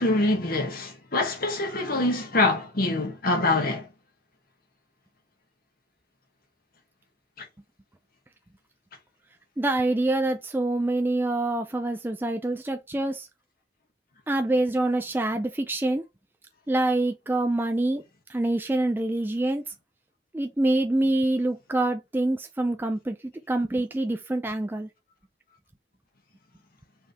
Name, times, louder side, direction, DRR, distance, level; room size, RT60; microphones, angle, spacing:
voice 1, 0.0-3.9, left 2 dB, 55° left, 1.2 m, -25 dB
voice 2, 9.6-13.3 14.3-16.0 16.7-18.0 18.3-19.7 20.3-24.9, right 2 dB, 10° right, 0.4 m, -26 dB
4.5 x 3.5 x 3.3 m
head